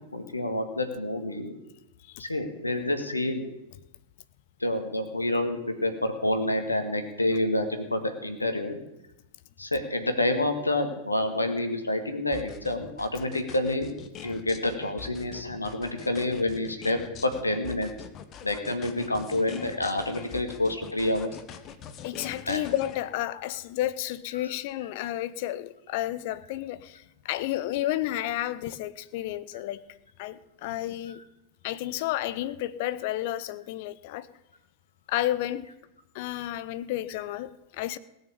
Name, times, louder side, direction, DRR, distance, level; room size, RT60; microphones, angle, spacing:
voice 1, 0.1-1.5 2.2-3.4 4.6-8.8 9.6-13.9 14.2-17.9 18.4-21.3 22.4-22.6, left 1 dB, 85° left, 1.8 m, -28 dB
sound 1, 12.3-23.0, left 8 dB, 35° left, 1.2 m, -43 dB
voice 2, 22.0-29.8 30.2-31.2 31.6-34.3 35.1-35.7 36.1-38.0, left 14 dB, 50° left, 0.7 m, -31 dB
17.5 x 6.6 x 8.7 m
figure-of-eight pair, 90°, 0 cm